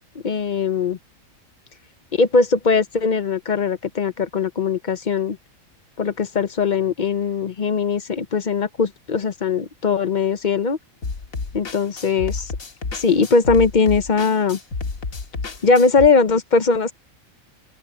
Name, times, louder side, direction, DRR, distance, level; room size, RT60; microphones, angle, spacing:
voice 1, 0.1-1.0 2.1-5.4 6.0-10.8 11.5-12.5 12.9-14.6 15.6-16.9, left 4 dB, 40° left, 0.8 m, -20 dB
sound 1, 11.0-16.1, left 4 dB, 80° left, 2.2 m, -30 dB
open air
omnidirectional pair, 1.4 m